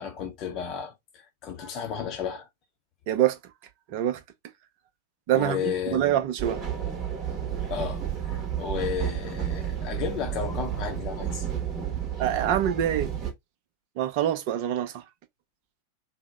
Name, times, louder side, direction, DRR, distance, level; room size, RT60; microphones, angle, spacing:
voice 1, 0.0-2.5 5.3-6.2 7.7-8.0 8.3-11.5, left 7 dB, 35° left, 0.6 m, -33 dB
voice 2, 3.1-3.4 3.9-4.2 5.3-6.6 12.2-13.1 14.0-15.0, right 11 dB, 45° right, 0.5 m, -25 dB
sound 1, 6.4-13.3, right 9 dB, 30° right, 0.9 m, -31 dB
2.8 x 2.0 x 3.5 m
figure-of-eight pair, 90°, 0 cm